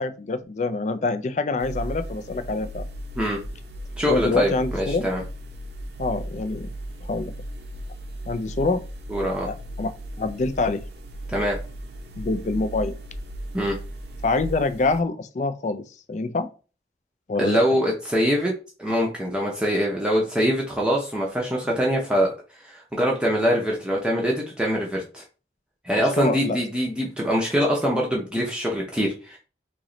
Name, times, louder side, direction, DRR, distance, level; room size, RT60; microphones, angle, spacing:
voice 1, 0.0-2.8 4.1-5.1 6.0-6.7 7.0-7.3 8.3-8.8 9.4-9.9 10.2-10.8 12.2-12.9 14.2-16.5 17.3-17.6 26.0-26.6, left 3 dB, 40° left, 0.3 m, -26 dB
sound 1, 1.6-15.0, right 1 dB, 70° right, 0.6 m, -36 dB
voice 2, 4.0-5.2 9.1-9.5 11.3-11.6 13.5-13.8 17.4-18.5 18.8-25.2 25.8-29.4, equal, 5° right, 0.6 m, -24 dB
3.1 x 2.9 x 3.8 m
head